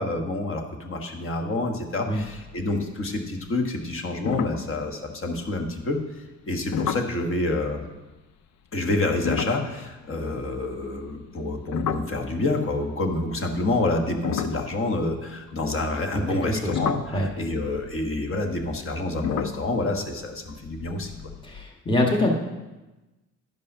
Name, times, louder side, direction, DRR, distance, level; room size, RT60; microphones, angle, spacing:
voice 1, 0.0-6.0 6.5-7.9 8.7-21.1, left 2 dB, 45° left, 4 dB, 1.4 m, -28 dB
sound 1, 2.1-2.8 3.1-3.5 3.8-3.9 4.3-5.6 6.7-7.2 9.1-12.7 13.5-15.7 16.3-21.6, left 7 dB, 65° left, 0.6 m, -33 dB
voice 2, 16.1-16.7 17.1-17.3 21.4-22.3, left 1 dB, 15° left, 1 dB, 1.4 m, -24 dB
11.0 x 5.4 x 5.5 m, 1.1 s
cardioid pair, 90°, 30 cm